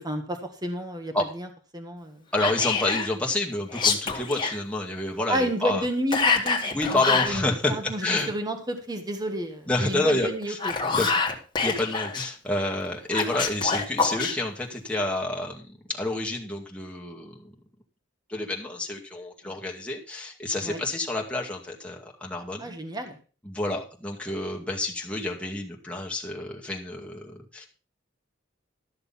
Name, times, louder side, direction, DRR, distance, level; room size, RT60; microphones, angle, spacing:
voice 1, 0.0-1.5 1.7-2.2 5.3-11.0 19.4-19.5 20.6-20.8 22.6-23.2, equal, 20° right, 6 dB, 1.5 m, -31 dB
voice 2, 2.3-5.8 6.7-7.7 8.0-8.3 9.7-10.6 10.9-11.1 11.6-17.5 18.3-22.7 23.4-27.7, left 2 dB, 5° left, -1 dB, 2.2 m, -29 dB
Whispering, 2.4-3.1 3.7-4.6 6.1-7.4 10.4-12.3 13.1-14.3, left 5 dB, 25° left, 1.9 m, -25 dB
13.5 x 6.7 x 5.7 m, 0.36 s
head